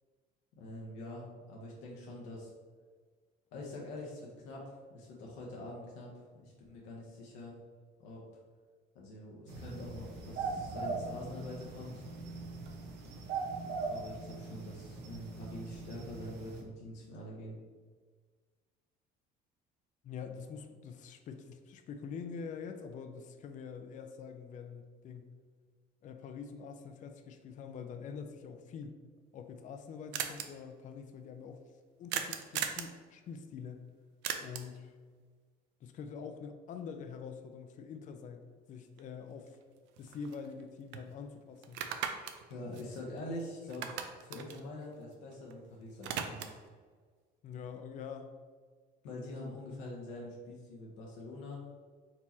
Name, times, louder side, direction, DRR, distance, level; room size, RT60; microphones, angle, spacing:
voice 1, 0.6-2.5 3.5-7.5 8.0-8.2 8.9-12.0 13.9-17.6 42.5-46.6 49.0-51.6, left 1 dB, 90° left, -3 dB, 0.9 m, -45 dB
sound 1, 9.5-16.6, right 4 dB, 60° right, 0.9 m, -41 dB
voice 2, 20.0-25.3 26.0-29.0 29.3-31.6 32.0-33.9 34.4-35.0 35.8-38.4 38.7-39.6 40.0-41.8 47.4-48.4, left 6 dB, 45° left, 7 dB, 0.4 m, -45 dB
sound 2, 29.2-29.3 29.4-29.5 29.7-29.8 30.1-30.4 32.1-32.9 34.2-34.8 39.0-39.1 39.5-40.6 40.9-41.0 41.6-43.4 43.7-45.5 45.8-46.7, right 8 dB, 80° right, 0.5 m, -38 dB
4.5 x 2.9 x 4.1 m, 1.6 s
cardioid pair, 110°, 19 cm